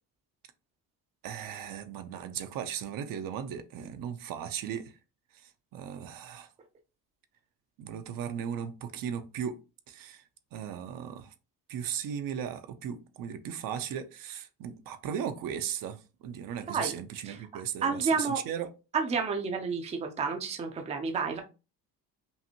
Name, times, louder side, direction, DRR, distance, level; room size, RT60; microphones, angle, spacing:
voice 1, 1.2-4.9 5.4-6.5 7.8-9.6 9.9-10.2 10.5-11.3 11.7-18.7, right 8 dB, 55° right, 0.6 m, -37 dB
voice 2, 17.8-18.4 18.9-21.4, right 5 dB, 15° right, 0.5 m, -30 dB
5.5 x 2.6 x 2.8 m
cardioid pair, 160°, 40 cm